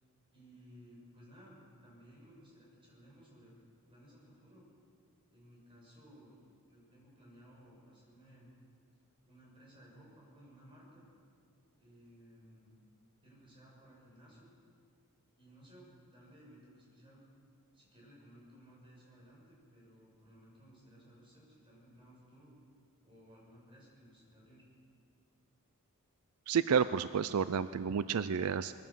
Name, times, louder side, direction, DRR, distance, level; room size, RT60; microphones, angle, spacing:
voice 1, 0.3-3.5 3.9-4.7 5.3-6.4 6.7-8.5 9.1-11.1 11.8-12.8 13.2-14.5 15.4-17.2 17.7-22.5 23.0-24.6, equal, 25° right, -4 dB, 7.1 m, -59 dB
voice 2, 26.5-28.7, right 7 dB, 75° right, 14 dB, 0.4 m, -30 dB
22.0 x 16.5 x 7.4 m, 2.3 s
head